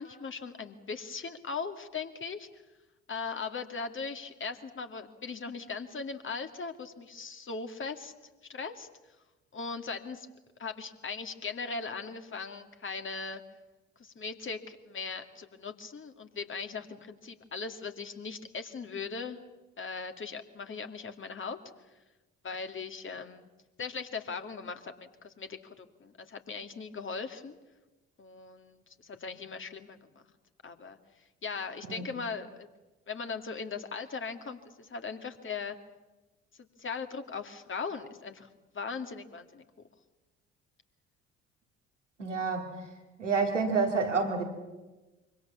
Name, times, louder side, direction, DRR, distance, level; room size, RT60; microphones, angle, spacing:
voice 1, 0.0-2.6 3.1-8.1 8.5-8.9 9.5-10.3 10.6-13.4 14.0-19.4 19.8-21.6 22.4-23.5 23.8-27.6 28.2-30.3 30.6-31.0 31.4-32.7 33.1-35.8 36.8-38.5 38.7-39.6, left 5 dB, 35° left, 6 dB, 2.4 m, -39 dB
voice 2, 42.2-42.9 43.2-44.4, right 4 dB, 90° right, 3 dB, 2.5 m, -29 dB
25.0 x 24.5 x 7.2 m, 1.1 s
figure-of-eight pair, 50°, 35 cm